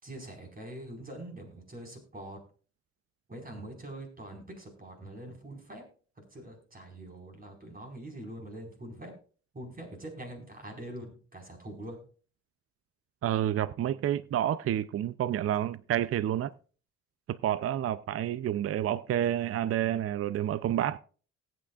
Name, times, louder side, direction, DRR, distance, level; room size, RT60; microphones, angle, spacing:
voice 1, 0.0-2.4 3.3-5.8 6.3-9.1 9.5-12.0, right 1 dB, 30° right, 4.6 m, -44 dB
voice 2, 13.2-16.5 17.3-21.0, right 11 dB, 50° right, 0.5 m, -29 dB
19.0 x 8.9 x 2.4 m
cardioid pair, 90°, 30 cm